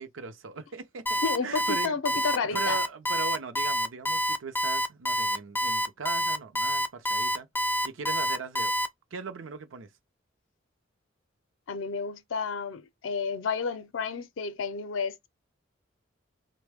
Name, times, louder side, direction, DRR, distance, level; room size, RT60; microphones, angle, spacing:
voice 1, 0.0-2.0 2.5-7.5 7.8-8.7 9.1-9.9, right 5 dB, 80° right, 0.5 m, -39 dB
Alarm, 1.1-8.9, equal, 10° left, 0.4 m, -27 dB
voice 2, 1.2-2.8 11.7-15.2, left 5 dB, 75° left, 0.5 m, -31 dB
3.4 x 2.1 x 3.3 m
head